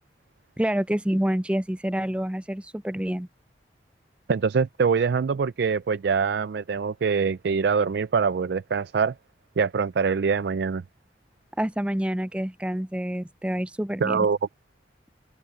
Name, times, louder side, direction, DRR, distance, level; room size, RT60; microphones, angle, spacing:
voice 1, 0.6-3.3 11.6-14.3, equal, 5° right, 0.4 m, -27 dB
voice 2, 4.3-9.1 9.6-10.8 14.0-14.4, right 5 dB, 70° right, 0.4 m, -24 dB
open air
head